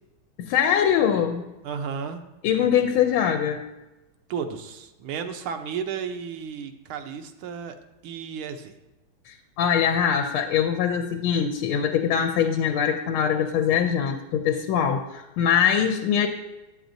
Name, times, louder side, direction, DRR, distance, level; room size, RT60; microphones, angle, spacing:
voice 1, 0.4-1.5 2.4-3.7 9.3-16.3, left 8 dB, 85° left, 5 dB, 1.4 m, -23 dB
voice 2, 1.6-2.2 4.3-7.7 8.0-8.7, right 6 dB, 85° right, 7 dB, 1.5 m, -33 dB
9.3 x 8.0 x 2.6 m, 1.0 s
omnidirectional pair, 2.3 m